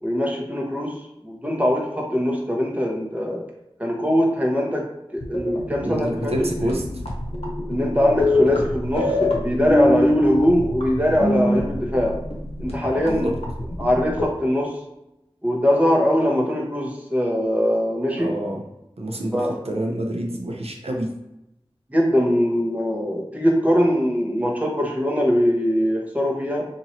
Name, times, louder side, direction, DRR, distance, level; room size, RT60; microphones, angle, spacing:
voice 1, 0.0-3.4 3.8-4.8 5.1-6.5 7.7-12.1 12.6-13.3 13.8-14.7 15.4-18.3 19.3-19.5 21.9-26.7, equal, 15° right, -2 dB, 1.0 m, -22 dB
sound 1, 5.2-14.2, left 1 dB, 80° left, 0.8 m, -24 dB
voice 2, 5.8-6.8 13.0-13.3 18.2-18.6 19.0-21.1, right 1 dB, 80° right, 0 dB, 0.6 m, -27 dB
2.9 x 2.6 x 4.2 m, 0.89 s
wide cardioid pair, 40°, 10 cm